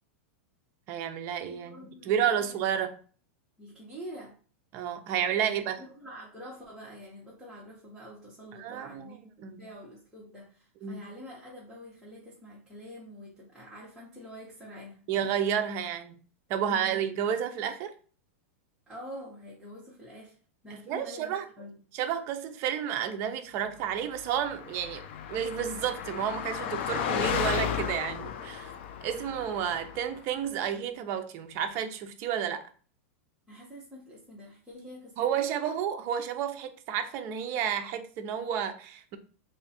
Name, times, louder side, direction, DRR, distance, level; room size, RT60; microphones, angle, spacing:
voice 1, 0.9-3.0 4.7-5.8 8.5-9.2 9.4-9.6 10.8-11.0 15.1-16.2 16.5-17.9 20.7-21.5 21.9-28.7 29.0-32.6 35.2-39.2, right 9 dB, 35° right, 0.5 m, -31 dB
voice 2, 1.4-2.5 3.6-4.3 5.4-15.1 16.6-17.0 18.9-20.4 20.6-21.8 33.5-35.4, equal, ahead, 0.9 m, -46 dB
Car passing by, 24.2-30.2, left 8 dB, 55° left, 0.5 m, -34 dB
3.3 x 2.3 x 4.1 m
supercardioid pair, 160°, 7 cm